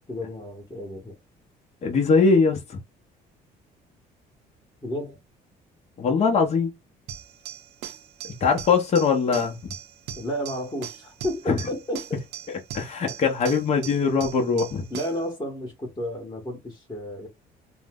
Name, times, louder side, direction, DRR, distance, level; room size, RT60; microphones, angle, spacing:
voice 1, 0.1-1.1 4.8-5.2 10.1-12.2 14.9-17.3, equal, 15° left, 1.0 m, -32 dB
voice 2, 1.8-2.8 6.0-6.7 8.4-9.6 11.5-11.6 12.7-14.8, left 5 dB, 40° left, 0.7 m, -21 dB
sound 1, 7.1-15.3, right 9 dB, 85° right, 0.6 m, -40 dB
2.6 x 2.0 x 3.5 m
cardioid pair, 110°, 17 cm